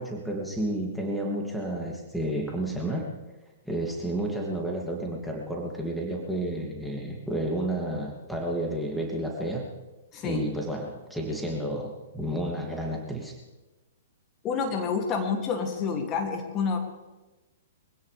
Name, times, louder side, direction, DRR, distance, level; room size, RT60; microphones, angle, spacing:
voice 1, 0.0-3.1 3.6-9.7 10.2-13.4, right 1 dB, ahead, -1 dB, 2.7 m, -31 dB
voice 2, 10.1-10.5 14.4-16.8, left 5 dB, 30° left, 2 dB, 2.7 m, -28 dB
24.0 x 16.5 x 3.5 m, 1.1 s
figure-of-eight pair, 115°, 0 cm